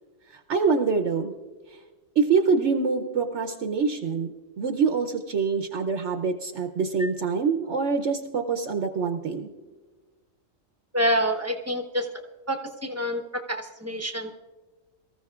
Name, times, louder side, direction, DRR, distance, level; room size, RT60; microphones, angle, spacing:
voice 1, 0.5-1.3 2.2-9.5, right 5 dB, 65° right, 5 dB, 1.0 m, -25 dB
voice 2, 10.9-12.1 12.5-14.3, equal, 15° right, 4 dB, 1.0 m, -27 dB
24.0 x 14.5 x 2.4 m, 1.3 s
omnidirectional pair, 1.3 m